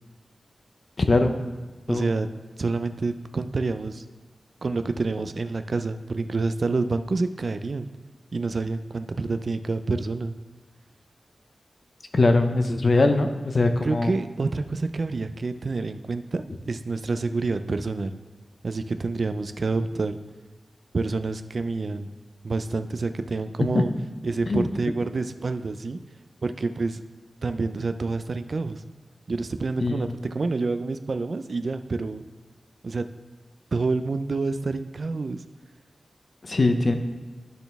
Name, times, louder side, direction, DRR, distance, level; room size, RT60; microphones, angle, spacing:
voice 1, 1.0-1.4 1.9-2.1 12.1-14.1 23.7-23.8 24.5-24.7 29.8-30.1 36.4-36.9, left 2 dB, 45° left, 6 dB, 0.6 m, -21 dB
voice 2, 1.9-2.3 2.6-4.0 4.6-7.9 8.3-10.3 13.8-18.2 18.6-20.2 20.9-22.1 22.4-23.9 24.2-26.0 26.4-27.0 27.4-28.8 29.3-30.1 30.3-32.2 32.8-33.1 33.7-35.4, right 3 dB, 55° right, 10 dB, 0.3 m, -28 dB
12.0 x 4.1 x 3.4 m, 1.3 s
wide cardioid pair, 120°, 0 cm